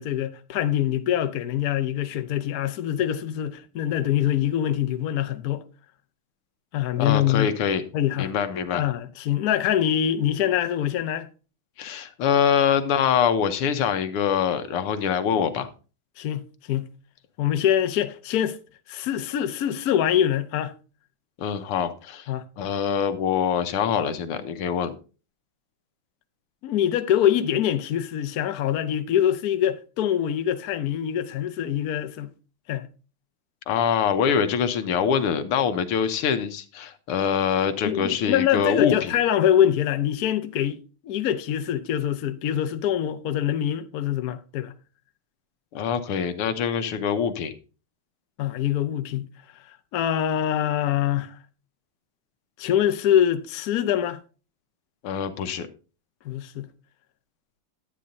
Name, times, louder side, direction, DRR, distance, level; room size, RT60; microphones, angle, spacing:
voice 1, 0.0-5.6 6.7-7.5 7.9-8.3 8.7-11.3 16.2-16.9 17.4-18.6 18.9-20.7 22.3-22.5 26.6-32.3 32.7-32.9 37.8-44.7 48.4-49.3 49.9-51.4 52.6-54.2 56.2-56.7, left 10 dB, 65° left, 0.9 m, -24 dB
voice 2, 7.0-7.8 8.2-8.8 11.8-15.7 21.4-24.9 33.7-39.1 45.7-47.5 55.0-55.7, left 7 dB, 85° left, 1.8 m, -24 dB
12.0 x 8.6 x 2.6 m
omnidirectional pair, 2.4 m